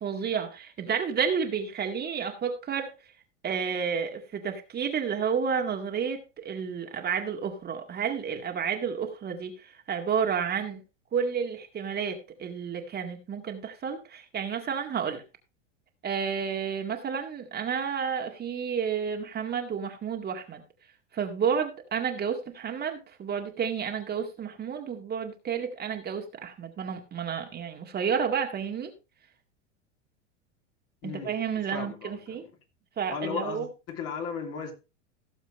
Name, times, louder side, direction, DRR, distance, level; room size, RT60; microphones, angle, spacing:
voice 1, 0.0-2.9 3.4-10.8 11.1-15.2 16.0-20.6 21.1-28.9 31.0-32.4 33.0-33.7, right 7 dB, 25° right, 4 dB, 1.9 m, -31 dB
voice 2, 31.7-32.5 33.1-34.7, left 6 dB, 40° left, 3 dB, 3.1 m, -35 dB
16.5 x 7.2 x 3.2 m, 0.28 s
figure-of-eight pair, 90°, 36 cm